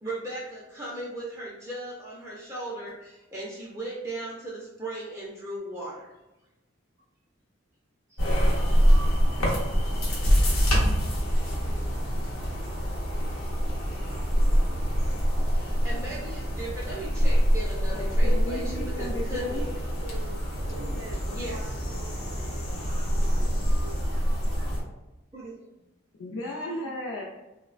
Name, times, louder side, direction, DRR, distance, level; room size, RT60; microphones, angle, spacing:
voice 1, 0.0-6.1 8.1-8.2 8.8-8.9 15.5-19.6 20.6-21.6 25.3-25.6, right 1 dB, 15° right, -5 dB, 0.4 m, -37 dB
sound 1, 8.2-24.8, equal, 80° left, 0.7 m, -25 dB
voice 2, 17.9-19.6 26.2-27.2, left 1 dB, 60° left, -2 dB, 0.3 m, -35 dB
voice 3, 19.3-24.8, equal, 75° right, -3 dB, 0.5 m, -44 dB
3.0 x 2.0 x 2.4 m, 0.99 s
head